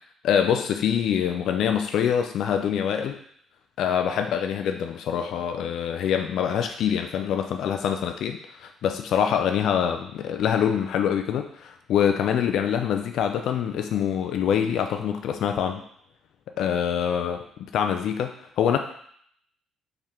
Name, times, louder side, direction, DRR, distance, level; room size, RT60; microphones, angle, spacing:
voice 1, 0.2-3.2 3.8-15.8 16.6-18.8, left 8 dB, 70° left, 5 dB, 0.3 m, -25 dB
3.6 x 3.2 x 4.4 m, 0.65 s
cardioid pair, 110°, 0 cm